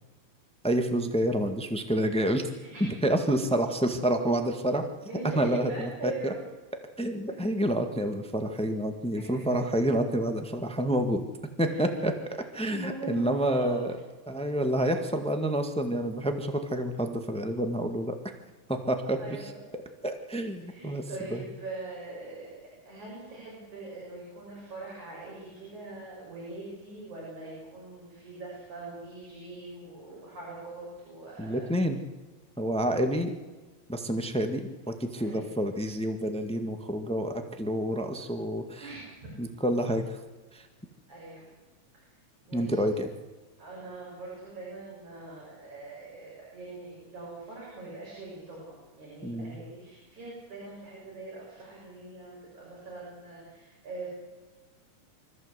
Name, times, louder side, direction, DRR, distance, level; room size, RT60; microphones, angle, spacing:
voice 1, 0.6-2.4 2.8-4.8 5.3-6.3 7.0-11.2 11.6-12.1 12.5-13.9 14.3-18.3 18.7-19.2 20.0-21.0 21.3-21.4 31.4-32.0 32.6-33.3 33.9-38.9 39.4-40.2 40.5-40.7 42.5-43.1 49.2-49.6, right 1 dB, 5° left, 6 dB, 0.5 m, -28 dB
voice 2, 2.5-2.8 5.0-6.4 7.2-7.4 9.5-9.6 11.6-11.8 12.7-13.8 19.2-19.6 20.6-31.7 35.1-35.5 38.8-39.3 41.1-41.5 41.9-42.2 42.5-42.8 43.6-54.1, right 3 dB, 65° right, -4 dB, 7.7 m, -42 dB
25.0 x 14.5 x 8.1 m, 1.3 s
omnidirectional pair, 3.6 m